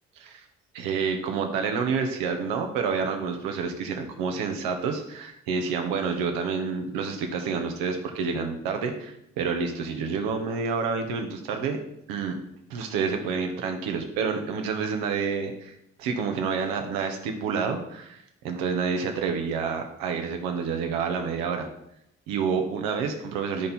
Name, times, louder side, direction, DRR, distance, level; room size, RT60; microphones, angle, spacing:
voice 1, 0.7-11.8 12.1-12.3 12.7-21.7 22.3-23.7, right 5 dB, 65° right, 4 dB, 1.5 m, -28 dB
12.5 x 5.3 x 4.4 m, 0.77 s
figure-of-eight pair, 45°, 36 cm